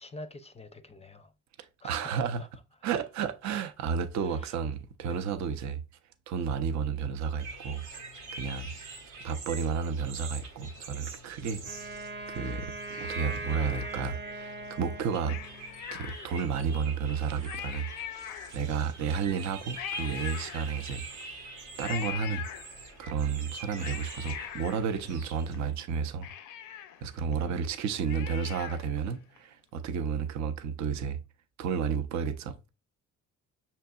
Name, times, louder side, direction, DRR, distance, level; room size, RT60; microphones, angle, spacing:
voice 1, 0.0-1.3 1.8-2.5 4.2-4.5 5.1-5.2, left 2 dB, 20° left, 0.4 m, -46 dB
voice 2, 1.6-2.5 2.8-5.8 6.3-7.8 8.3-8.7 9.2-11.9 12.3-15.4 15.9-17.9 18.5-21.0 21.8-22.4 23.0-26.3 26.6-26.7 27.0-31.2 31.6-32.7, right 6 dB, 65° right, 0.6 m, -32 dB
sound 1, 7.4-25.7, right 3 dB, 90° right, 1.0 m, -45 dB
Wind instrument woodwind instrument, 11.6-15.8, right 3 dB, 35° right, 0.9 m, -40 dB
Cat, 12.9-14.4 15.2-16.6 17.1-17.2 17.4-18.9 19.7-21.1 21.8-23.1 23.5-25.5 25.9-26.0 26.2-29.0 29.4-29.5, left 10 dB, 80° left, 0.5 m, -42 dB
5.8 x 2.8 x 2.2 m
cardioid pair, 75°, 31 cm